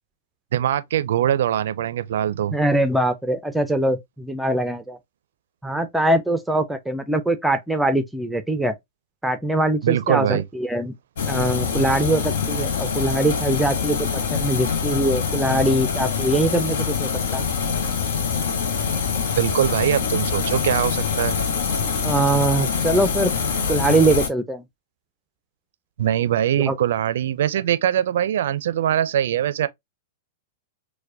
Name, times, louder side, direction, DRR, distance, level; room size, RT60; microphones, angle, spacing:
voice 1, 0.5-2.5 9.8-10.4 19.4-21.4 26.0-29.7, right 11 dB, 65° right, 0.4 m, -22 dB
voice 2, 2.5-5.0 5.6-8.7 9.2-10.9 11.3-17.4 22.0-23.3 23.7-24.6 26.6-26.8, right 1 dB, 5° right, 0.5 m, -22 dB
sound 1, 11.2-24.3, left 6 dB, 70° left, 0.7 m, -24 dB
4.5 x 2.2 x 2.6 m
hypercardioid pair, 105°, 0 cm